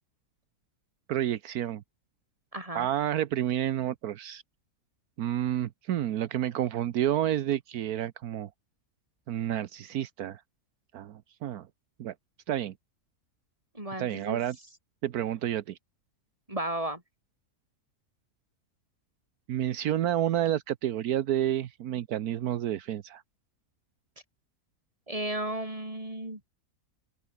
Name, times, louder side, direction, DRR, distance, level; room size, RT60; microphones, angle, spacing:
voice 1, 1.1-1.8 2.7-4.4 5.2-8.5 9.3-10.4 10.9-11.7 12.0-12.1 12.5-12.7 14.0-14.6 15.0-15.8 19.5-23.2, right 11 dB, 75° right, 1.3 m, -30 dB
voice 2, 2.5-2.9 13.7-14.4 16.5-17.0 25.1-26.4, right 1 dB, 20° right, 5.3 m, -34 dB
open air
omnidirectional pair, 1.6 m